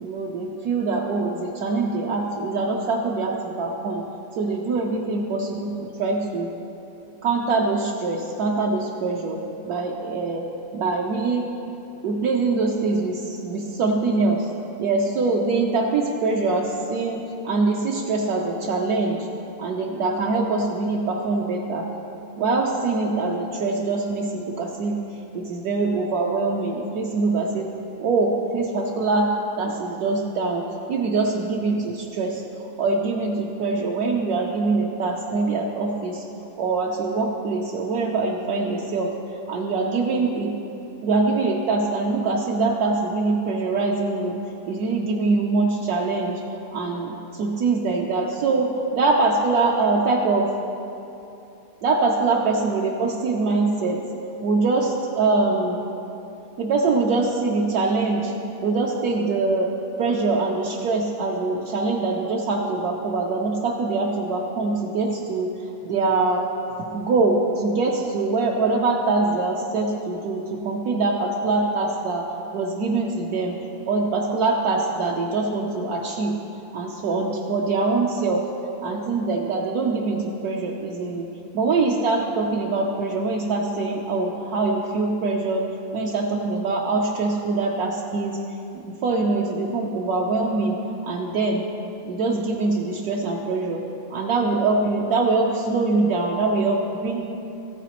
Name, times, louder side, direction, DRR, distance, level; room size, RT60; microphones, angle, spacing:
voice 1, 0.0-4.0 4.3-6.5 7.2-9.4 9.6-10.5 10.7-11.4 12.0-14.5 14.8-19.3 19.6-21.9 22.4-27.7 28.0-36.2 36.6-39.1 39.5-40.5 41.0-44.4 44.7-46.4 46.7-50.5 51.8-54.0 54.4-55.8 56.6-58.3 58.6-59.7 60.0-66.5 66.9-73.6 73.9-76.4 76.7-78.5 78.8-81.3 81.5-85.7 85.9-88.4 88.7-90.8 91.0-91.6 92.0-93.8 94.1-97.2, right 3 dB, 70° right, -1 dB, 1.1 m, -23 dB
14.0 x 9.1 x 3.0 m, 3.0 s
omnidirectional pair, 1.8 m